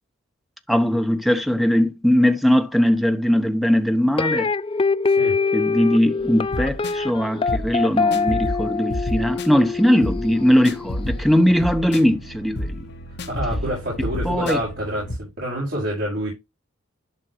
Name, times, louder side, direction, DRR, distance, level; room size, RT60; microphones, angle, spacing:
voice 1, 0.7-4.5 5.5-12.9 14.2-14.6, equal, ahead, 0.9 m, -20 dB
sound 1, 4.2-11.3, left 4 dB, 25° left, 0.4 m, -24 dB
voice 2, 5.0-5.4 13.3-16.3, equal, 50° right, 5.2 m, -27 dB
sound 2, 6.2-15.2, left 1 dB, 50° left, 1.3 m, -31 dB
11.5 x 5.3 x 3.1 m
head